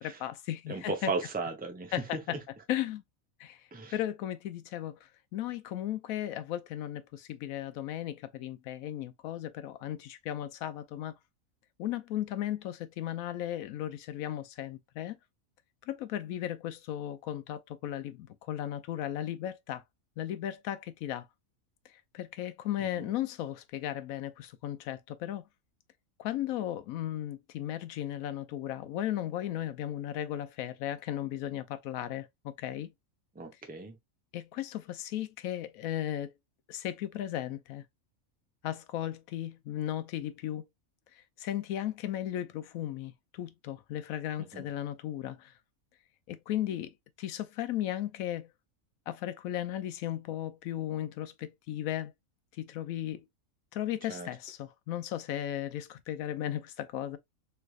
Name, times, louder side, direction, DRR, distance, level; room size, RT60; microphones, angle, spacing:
voice 1, 0.0-1.1 1.9-2.4 2.7-3.0 3.4-11.2 11.8-15.2 15.9-19.8 20.2-21.3 21.9-25.4 26.2-32.9 34.3-36.3 36.7-37.8 38.6-40.6 41.1-45.5 46.3-48.5 49.1-52.1 52.5-53.2 53.7-57.2, left 12 dB, 80° left, 1.0 m, -36 dB
voice 2, 0.7-2.4 3.7-4.0 22.8-23.1 33.3-34.0 44.5-44.7 54.1-54.3, right 3 dB, 10° right, 0.4 m, -36 dB
3.3 x 3.2 x 2.4 m
omnidirectional pair, 1.5 m